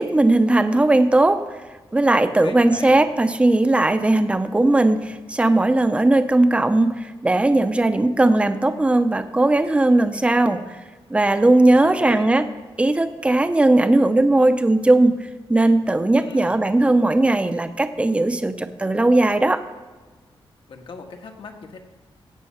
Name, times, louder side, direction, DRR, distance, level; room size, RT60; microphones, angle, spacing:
voice 1, 0.0-1.6 1.9-10.8 11.1-12.5 12.8-19.6, right 2 dB, 10° right, 9 dB, 0.6 m, -18 dB
voice 2, 2.4-3.0 11.7-12.3 16.1-16.6 20.7-21.8, left 4 dB, 65° left, 4 dB, 1.5 m, -38 dB
17.0 x 7.5 x 5.7 m, 1.3 s
wide cardioid pair, 135°, 9 cm